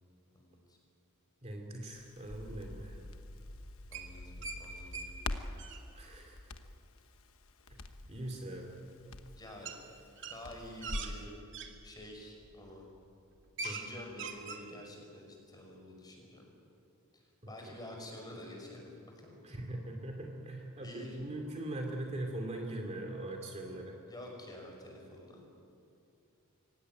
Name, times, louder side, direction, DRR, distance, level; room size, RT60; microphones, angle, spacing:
voice 1, 0.3-0.8 3.9-5.3 9.4-9.7 10.3-11.4 11.8-12.9 13.6-16.5 17.1-18.8 19.1-19.4 20.8-21.2 24.1-25.5, left 1 dB, 20° left, 1 dB, 5.9 m, -49 dB
voice 2, 1.4-3.0 5.9-6.5 7.7-8.7 13.6-13.8 17.4-17.7 19.4-24.0, right 1 dB, 30° right, 1 dB, 2.6 m, -41 dB
Crackle, 1.9-11.2, left 2 dB, 65° left, 1.2 m, -45 dB
sound 1, 3.9-4.6 4.9-5.1 5.4-5.8 8.1-8.2 9.6-9.8 10.2-11.7 12.4-12.6 13.0-13.1 13.3-13.9 14.1-14.6, right 4 dB, 55° right, 2.4 m, -41 dB
25.0 x 17.5 x 9.6 m, 2.5 s
head